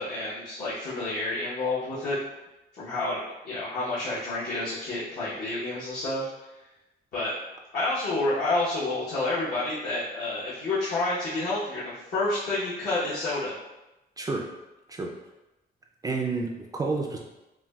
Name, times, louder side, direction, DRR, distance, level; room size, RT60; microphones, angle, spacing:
voice 1, 0.0-2.2 2.8-6.3 7.1-7.3 7.7-13.6, left 2 dB, 65° left, -11 dB, 1.0 m, -29 dB
voice 2, 14.2-14.5 14.9-15.1 16.0-17.2, right 3 dB, 20° right, 1 dB, 0.3 m, -29 dB
5.8 x 2.2 x 2.3 m, 1.0 s
cardioid pair, 140°, 17 cm